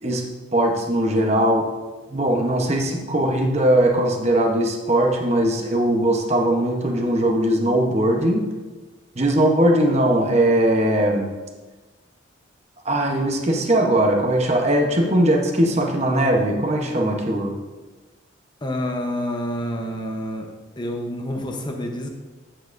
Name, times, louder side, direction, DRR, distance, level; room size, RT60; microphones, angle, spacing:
voice 1, 0.5-1.7 2.1-8.5 9.2-11.3 12.8-17.6, right 1 dB, 35° right, 1 dB, 0.9 m, -20 dB
voice 2, 18.6-20.5 20.8-22.1, left 1 dB, 25° left, 2 dB, 0.8 m, -28 dB
8.8 x 7.5 x 2.6 m, 1.3 s
head